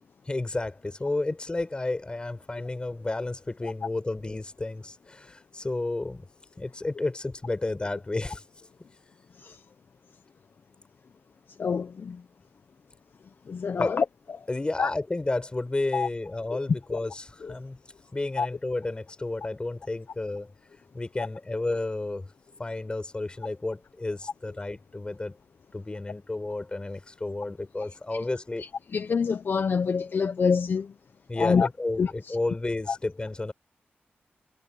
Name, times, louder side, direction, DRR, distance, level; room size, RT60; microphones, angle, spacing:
voice 1, 0.2-6.3 6.6-8.4 13.8-13.9 14.5-17.8 18.1-20.5 20.9-22.3 22.6-25.3 25.7-28.7 31.3-33.5, left 2 dB, 25° left, 4.9 m, -31 dB
voice 2, 11.6-12.2 13.5-14.0 14.4-14.5 14.8-14.9 15.9-16.1 16.9-17.0 17.4-17.5 18.4-18.5 28.9-30.9 31.4-31.7 32.0-32.4 32.9-33.0, left 5 dB, 60° left, 0.8 m, -26 dB
wide cardioid pair, 130°, 4 cm